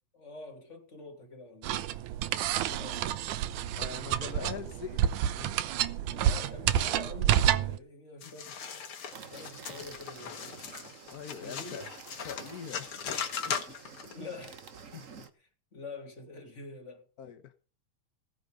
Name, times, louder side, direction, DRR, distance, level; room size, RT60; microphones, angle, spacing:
voice 1, 0.1-2.0 2.4-3.3 4.2-4.6 6.1-8.8 9.3-11.0 11.4-11.8 14.1-14.7 14.9-15.1 15.4-17.1, left 3 dB, 25° left, 3.0 m, -46 dB
sound 1, 1.6-7.8, right 11 dB, 80° right, 2.3 m, -29 dB
voice 2, 3.8-5.6 11.1-11.9 12.2-13.0 13.4-13.5 14.9-15.0 17.2-17.5, left 7 dB, 75° left, 0.8 m, -43 dB
sound 2, 8.2-14.1, left 7 dB, 50° left, 2.4 m, -39 dB
sound 3, 9.1-15.3, right 6 dB, 60° right, 0.8 m, -50 dB
16.5 x 9.3 x 5.1 m
omnidirectional pair, 3.5 m